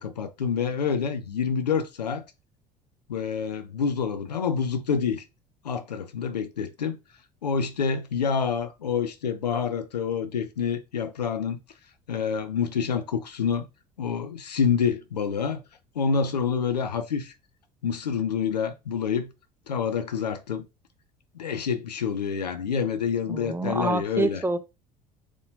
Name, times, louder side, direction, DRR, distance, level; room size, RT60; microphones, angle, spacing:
voice 1, 0.0-2.2 3.1-5.2 5.6-7.0 7.4-11.6 12.1-13.7 14.0-15.6 16.0-17.3 17.8-19.3 19.7-20.7 21.3-24.4, left 6 dB, 85° left, 0.5 m, -27 dB
voice 2, 23.3-24.6, right 3 dB, 10° right, 0.6 m, -27 dB
4.0 x 3.0 x 2.7 m
figure-of-eight pair, 60°, 20 cm